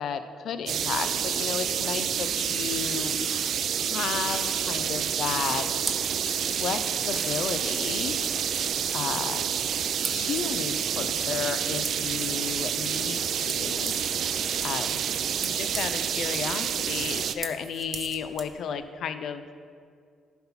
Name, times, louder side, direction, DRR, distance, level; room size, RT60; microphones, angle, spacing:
voice 1, 0.0-3.2 3.8-5.8 6.5-6.8 7.0-8.2 8.9-9.4 10.1-13.9 14.2-14.3 14.6-15.0 15.4-19.4, left 7 dB, 70° left, 10 dB, 0.5 m, -33 dB
sound 1, 0.7-17.3, right 8 dB, 70° right, 0.4 m, -28 dB
sound 2, 2.8-3.5 4.3-4.6 5.3-5.6 6.2-6.5 7.1-7.5 8.2-8.3, left 3 dB, 35° left, 0.9 m, -40 dB
sound 3, 5.4-18.6, right 3 dB, 30° right, 0.9 m, -41 dB
10.5 x 4.4 x 5.6 m, 2.3 s
cardioid pair, 80°, 0 cm